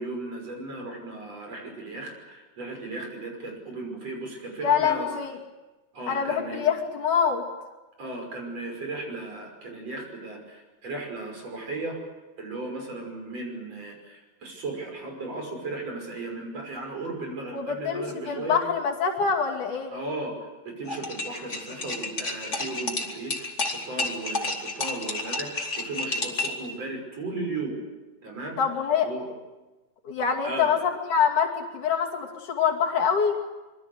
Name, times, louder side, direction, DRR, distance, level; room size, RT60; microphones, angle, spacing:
voice 1, 0.0-5.1 5.9-6.6 8.0-12.0 12.4-18.6 19.9-27.8 28.2-28.6 29.0-29.2 30.4-30.7, right 2 dB, 45° right, 2 dB, 6.8 m, -36 dB
voice 2, 4.6-5.3 6.1-7.4 17.5-19.9 28.6-29.1 30.1-33.4, left 6 dB, 60° left, -1 dB, 4.0 m, -25 dB
sound 1, 20.9-26.7, left 2 dB, 20° left, 2.7 m, -30 dB
25.5 x 23.0 x 8.0 m, 1.1 s
omnidirectional pair, 4.0 m